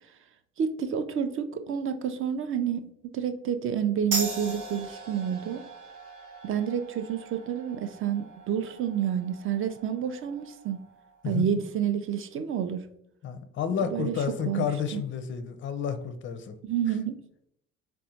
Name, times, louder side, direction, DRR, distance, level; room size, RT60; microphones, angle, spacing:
voice 1, 0.6-5.6 6.4-10.8 11.3-12.9 13.8-14.1 14.5-14.7 14.9-15.0 16.6-17.2, right 8 dB, 35° right, 10 dB, 0.4 m, -29 dB
sound 1, 4.1-11.2, right 3 dB, 60° right, 1.0 m, -39 dB
voice 2, 13.2-16.6, left 7 dB, 30° left, 10 dB, 0.4 m, -30 dB
4.2 x 2.1 x 2.7 m, 0.71 s
hypercardioid pair, 60°, 38 cm